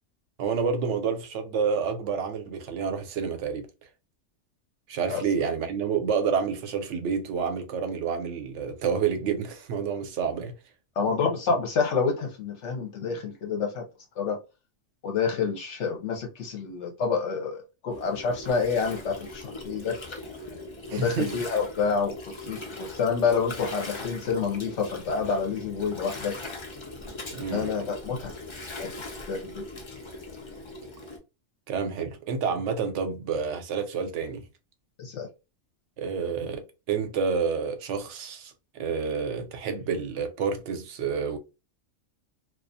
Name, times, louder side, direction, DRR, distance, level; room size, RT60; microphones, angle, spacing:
voice 1, 0.4-3.7 4.9-10.5 20.9-21.3 27.3-27.8 31.7-34.4 36.0-41.4, right 6 dB, 75° right, 0.9 m, -29 dB
voice 2, 11.0-13.8 14.2-14.4 15.0-20.0 20.9-22.2 22.5-26.4 27.5-28.3 28.8-28.9 29.3-29.6 35.0-35.3, left 5 dB, 75° left, 1.0 m, -28 dB
Gurgling, 17.9-31.2, left 2 dB, 35° left, 0.4 m, -40 dB
2.3 x 2.3 x 2.5 m
omnidirectional pair, 1.2 m